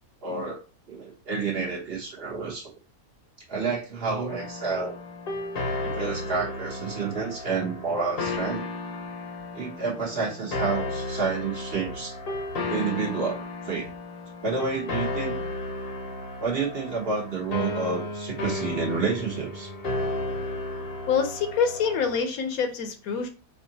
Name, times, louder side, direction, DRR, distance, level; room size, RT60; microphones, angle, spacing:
voice 1, 0.2-0.6 0.9-2.7 3.5-5.0 5.8-8.7 9.5-12.1 12.7-13.9 14.4-15.4 16.4-19.7, right 4 dB, 50° right, 1.0 m, -29 dB
sound 1, 4.3-22.2, left 2 dB, 50° left, 0.8 m, -33 dB
voice 2, 21.1-23.3, left 6 dB, 75° left, 1.1 m, -26 dB
4.5 x 2.4 x 2.7 m
omnidirectional pair, 1.5 m